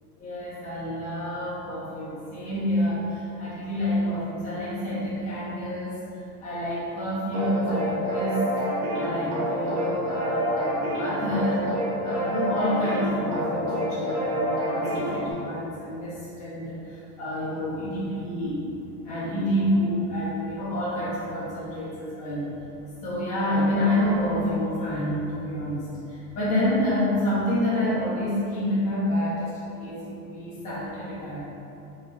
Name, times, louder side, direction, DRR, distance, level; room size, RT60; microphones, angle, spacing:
voice 1, 0.2-6.0 6.4-8.4 9.0-11.6 12.0-18.6 19.0-22.5 23.0-31.4, left 1 dB, 15° left, -9 dB, 0.7 m, -28 dB
sound 1, 7.3-15.3, equal, 30° right, 1.2 m, -28 dB
6.0 x 3.0 x 2.3 m, 2.9 s
supercardioid pair, 170°, 48 cm